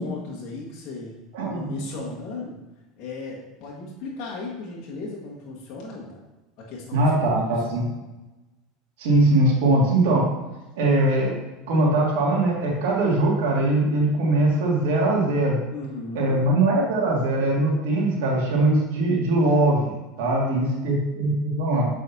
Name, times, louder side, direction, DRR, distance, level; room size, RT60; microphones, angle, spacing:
voice 1, 0.0-1.2 1.5-2.6 3.0-6.2 6.6-7.4 15.7-16.4 20.2-20.9, left 3 dB, 60° left, -4 dB, 1.6 m, -36 dB
voice 2, 1.3-1.7 6.9-7.8 9.0-10.3 10.8-11.3 11.7-15.6 16.1-19.9 20.2-21.9, right 2 dB, 80° right, -3 dB, 2.0 m, -21 dB
7.3 x 4.9 x 2.8 m, 1.1 s
supercardioid pair, 110°, 0 cm